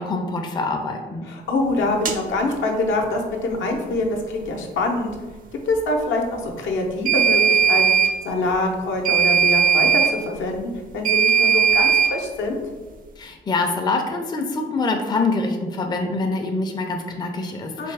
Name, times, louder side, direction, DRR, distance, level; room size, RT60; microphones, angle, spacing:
voice 1, 0.0-1.2 13.2-17.9, left 3 dB, 20° left, 3 dB, 0.4 m, -25 dB
voice 2, 1.3-5.2 5.7-12.6 17.8-17.9, left 2 dB, 75° left, 2 dB, 0.7 m, -25 dB
sound 1, 2.1-2.2 7.1-8.1 9.0-10.1 11.0-12.1, right 7 dB, 45° right, 0.4 m, -17 dB
3.4 x 2.9 x 3.3 m, 1.3 s
cardioid pair, 90°, 20 cm